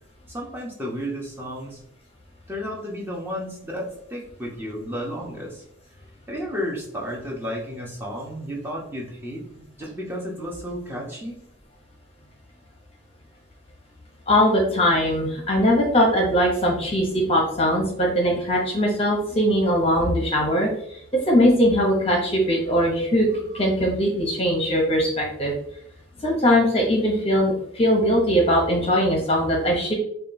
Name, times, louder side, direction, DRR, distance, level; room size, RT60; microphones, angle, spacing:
voice 1, 0.3-1.8 2.5-5.6 6.3-11.4, equal, 10° right, -2 dB, 0.8 m, -32 dB
voice 2, 14.3-21.0 21.3-25.5 26.2-29.9, equal, 30° left, -1 dB, 0.7 m, -21 dB
4.9 x 2.3 x 2.6 m, 0.68 s
head